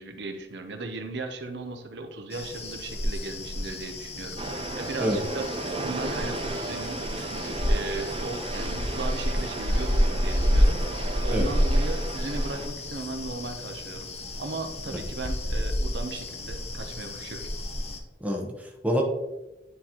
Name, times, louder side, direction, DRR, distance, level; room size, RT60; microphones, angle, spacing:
voice 1, 0.0-5.5 5.8-14.1 14.4-17.5, right 3 dB, 65° right, 5 dB, 0.7 m, -37 dB
sound 1, 2.3-18.0, equal, 35° left, 0.7 m, -29 dB
sound 2, 4.4-12.7, right 3 dB, 30° right, 0.4 m, -35 dB
voice 2, 18.2-19.0, equal, 10° right, 1 dB, 0.8 m, -27 dB
9.5 x 4.1 x 2.9 m, 1.0 s
head